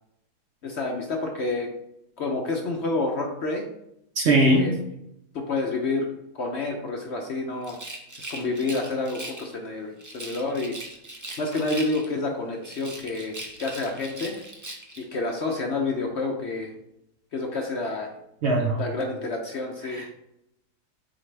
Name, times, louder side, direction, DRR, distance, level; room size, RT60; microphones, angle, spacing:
voice 1, 0.6-1.7 2.2-3.7 4.6-4.7 5.3-6.1 6.3-7.8 8.2-10.7 11.4-14.5 15.0-16.7 17.3-18.1 18.8-20.0, left 3 dB, 55° left, 2 dB, 0.8 m, -29 dB
voice 2, 4.2-4.7 18.4-18.8 19.9-20.1, right 1 dB, 55° right, 1 dB, 0.9 m, -20 dB
Rattle, 7.6-9.5 10.0-12.3 12.6-15.1, right 1 dB, 30° right, 0.3 m, -40 dB
7.9 x 3.7 x 3.3 m, 0.81 s
omnidirectional pair, 1.7 m